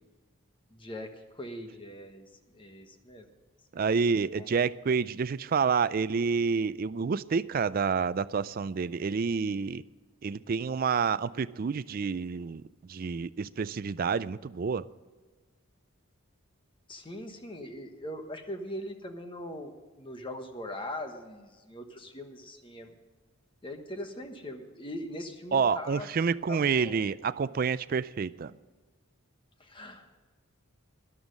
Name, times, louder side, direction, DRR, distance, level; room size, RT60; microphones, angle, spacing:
voice 1, 0.7-3.3 3.7-3.9 4.3-4.5 16.9-22.9 23.6-26.1 26.5-27.0 29.6-30.1, left 1 dB, 25° left, 6 dB, 1.2 m, -41 dB
voice 2, 3.7-9.8 10.2-12.6 12.9-14.8 25.5-28.5, right 5 dB, 40° right, 16 dB, 0.3 m, -28 dB
13.5 x 11.0 x 5.3 m, 1.3 s
head